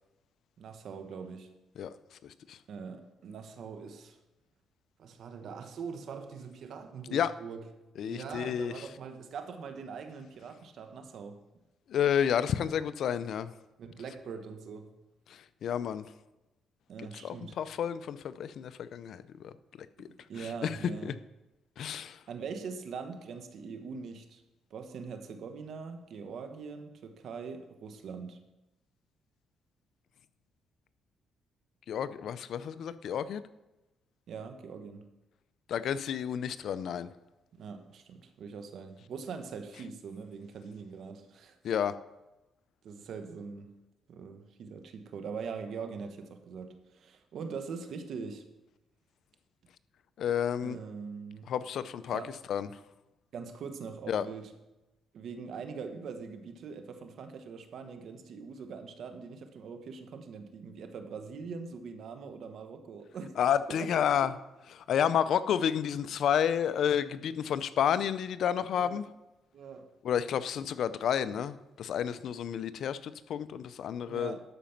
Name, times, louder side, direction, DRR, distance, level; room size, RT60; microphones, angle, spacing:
voice 1, 0.6-1.5 2.7-4.2 5.0-7.7 8.0-11.4 13.8-14.9 16.9-17.6 20.0-21.2 22.3-24.4 24.7-28.4 34.3-35.0 37.5-41.6 42.8-43.8 44.1-48.5 50.6-51.5 52.1-52.4 53.3-54.5 55.1-63.3 63.7-64.3 68.7-69.0 69.5-70.0 74.1-74.4, right 5 dB, 65° right, 7 dB, 1.2 m, -42 dB
voice 2, 2.2-2.6 7.1-7.3 8.0-8.9 11.9-13.5 15.3-16.1 17.0-19.5 20.0-20.1 20.4-20.8 21.0-21.1 21.8-22.2 31.9-33.4 35.7-37.1 41.6-42.0 50.2-50.8 51.5-52.2 52.5-52.7 54.1-54.3 63.4-64.3 64.8-69.0 70.0-74.4, left 9 dB, 70° left, 14 dB, 0.5 m, -30 dB
12.5 x 5.1 x 5.8 m, 0.99 s
cardioid pair, 90°, 0 cm